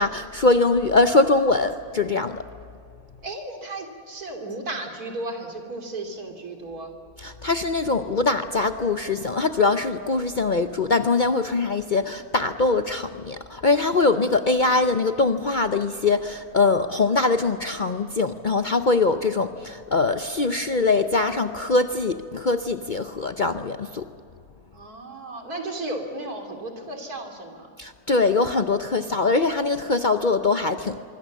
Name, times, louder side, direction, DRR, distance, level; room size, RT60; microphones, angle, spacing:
voice 1, 0.0-2.4 7.2-24.0 27.8-31.0, left 3 dB, 45° left, 9 dB, 0.6 m, -22 dB
voice 2, 3.2-6.9 14.0-14.1 24.7-27.7, right 2 dB, 80° right, 4 dB, 3.5 m, -34 dB
25.0 x 24.0 x 7.3 m, 2.4 s
omnidirectional pair, 1.6 m